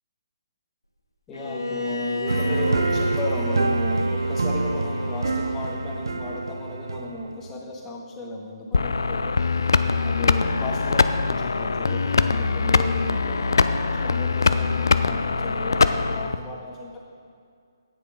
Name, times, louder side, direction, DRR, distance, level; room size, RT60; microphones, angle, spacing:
Bowed string instrument, 1.3-6.4, left 1 dB, 90° left, 1.0 m, -33 dB
voice 1, 1.3-9.4 10.0-17.0, left 1 dB, 15° left, -2 dB, 1.6 m, -34 dB
sound 1, 2.3-7.5, right 3 dB, 70° right, 0.6 m, -26 dB
sound 2, 8.7-16.4, left 4 dB, 65° left, 0.5 m, -22 dB
14.0 x 9.6 x 3.7 m, 2.2 s
figure-of-eight pair, 135°, 2 cm